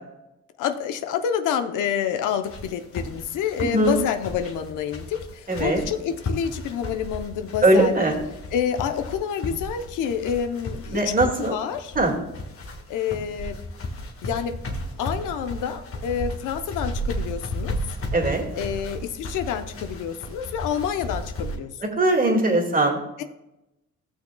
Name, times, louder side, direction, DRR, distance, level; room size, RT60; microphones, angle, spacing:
voice 1, 0.6-7.9 8.5-11.9 12.9-13.6 14.2-14.6 15.0-17.8 18.6-21.8 23.2-23.3, left 8 dB, 90° left, 8 dB, 0.7 m, -28 dB
sound 1, 2.4-21.6, left 1 dB, 45° left, 1.5 m, -34 dB
voice 2, 5.5-5.8 7.6-8.2 10.9-11.5 12.0-12.1 18.1-18.4 22.0-23.0, right 2 dB, 30° right, 1 dB, 1.9 m, -20 dB
15.5 x 6.4 x 2.2 m, 0.92 s
cardioid pair, 90°, 30 cm